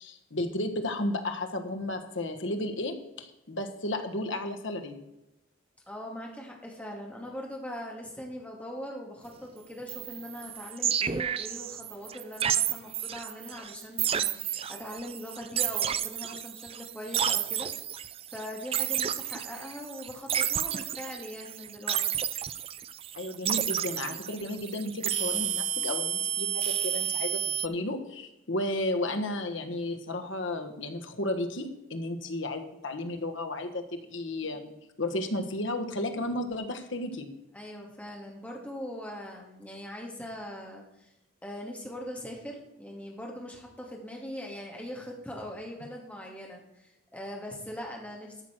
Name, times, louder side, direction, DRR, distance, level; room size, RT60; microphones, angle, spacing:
voice 1, 0.0-5.0 23.1-34.7 35.0-37.3, left 1 dB, 70° left, 5 dB, 1.4 m, -33 dB
voice 2, 5.9-22.0 34.4-34.5 37.5-41.1 41.4-48.4, equal, 5° left, -1 dB, 2.4 m, -41 dB
sound 1, 9.9-27.7, right 9 dB, 30° right, 0.4 m, -31 dB
13.5 x 6.4 x 6.1 m, 0.91 s
head